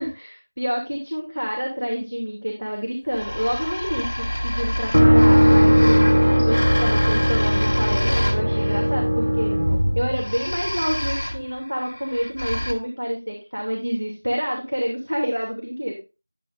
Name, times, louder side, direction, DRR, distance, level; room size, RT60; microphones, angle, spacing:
voice 1, 0.0-9.6 9.9-16.0, equal, 80° right, 0 dB, 2.6 m, -28 dB
sound 1, 3.1-8.9 10.1-12.7, equal, 5° left, 0.5 m, -28 dB
sound 2, 4.9-10.8, equal, 60° right, 1.0 m, -18 dB
10.5 x 8.6 x 2.5 m, 0.30 s
figure-of-eight pair, 180°, 0 cm